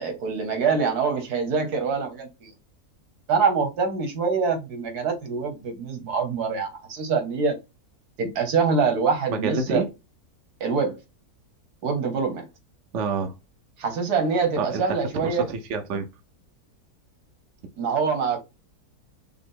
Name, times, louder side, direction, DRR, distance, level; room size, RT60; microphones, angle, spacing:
voice 1, 0.0-2.5 3.3-7.6 8.2-9.8 10.6-11.0 11.8-12.5 13.8-15.5 17.8-18.4, right 5 dB, 85° right, 1.7 m, -25 dB
voice 2, 9.3-9.9 12.9-13.3 14.6-16.1, right 4 dB, 55° right, 1.0 m, -28 dB
5.7 x 2.0 x 3.8 m
omnidirectional pair, 1.6 m